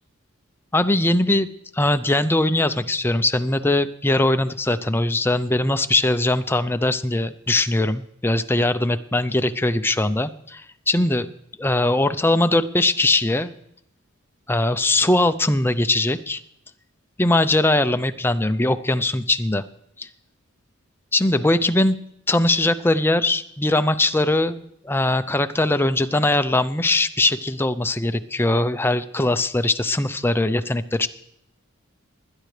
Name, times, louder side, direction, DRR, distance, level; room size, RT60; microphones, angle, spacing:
voice 1, 0.7-1.5 1.7-11.3 11.6-13.5 14.5-16.4 17.2-19.6 20.0-20.1 21.1-21.9 22.3-31.1, left 2 dB, 10° left, 10 dB, 0.5 m, -21 dB
21.0 x 10.5 x 3.3 m, 0.75 s
head